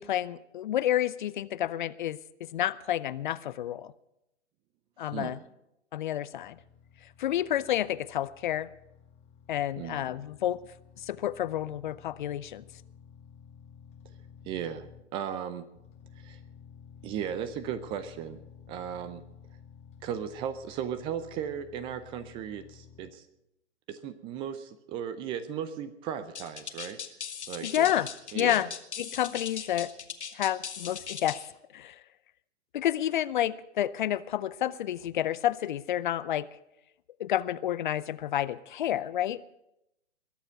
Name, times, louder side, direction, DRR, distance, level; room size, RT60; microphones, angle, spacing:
voice 1, 0.0-3.9 5.0-5.4 5.9-6.6 7.2-8.7 9.5-10.6 11.0-12.6 27.6-28.1 28.3-28.7 29.0-29.9 30.3-31.4 31.7-32.0 32.7-36.5 37.2-39.4, left 12 dB, 45° left, 18 dB, 0.6 m, -29 dB
voice 2, 5.0-5.4 9.8-10.0 14.4-14.9 15.1-15.7 16.2-16.4 17.0-18.4 18.7-19.2 20.0-23.3 23.9-27.0 27.5-27.9 28.3-28.7, right 9 dB, 15° right, 13 dB, 0.5 m, -36 dB
sound 1, 6.3-15.4 15.7-23.1, left 7 dB, 20° left, 1.4 m, -53 dB
sound 2, 26.3-31.5, left 7 dB, 75° left, 1.6 m, -39 dB
21.5 x 7.3 x 7.9 m, 0.86 s
figure-of-eight pair, 125°, 34 cm